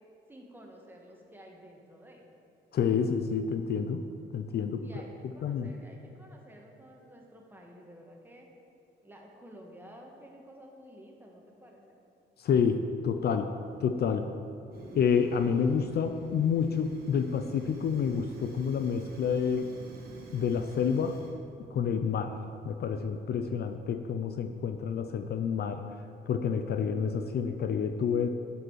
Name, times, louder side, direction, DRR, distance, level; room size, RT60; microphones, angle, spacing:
voice 1, 0.3-2.2 4.8-8.5 9.0-12.0, equal, 10° right, 0 dB, 1.5 m, -52 dB
voice 2, 2.7-4.0 4.3-4.9 5.4-5.7 12.4-13.5 13.8-14.3 15.0-19.7 20.3-21.2 21.7-22.3 22.6-25.8 26.3-28.3, left 6 dB, 55° left, 7 dB, 0.5 m, -28 dB
Fire, 14.7-21.3, right 2 dB, 50° right, 1.6 m, -47 dB
10.5 x 5.1 x 4.7 m, 2.4 s
cardioid pair, 90°, 20 cm